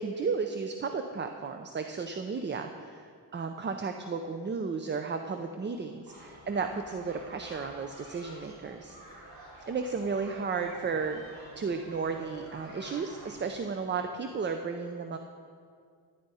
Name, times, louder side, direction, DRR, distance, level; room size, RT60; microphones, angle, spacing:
voice 1, 0.0-9.2 9.7-11.2 11.6-15.2, right 5 dB, 30° right, 6 dB, 0.4 m, -34 dB
sound 1, 6.0-13.6, right 1 dB, 85° right, 3.2 m, -49 dB
13.0 x 10.0 x 4.1 m, 2.2 s
wide cardioid pair, 160°, 42 cm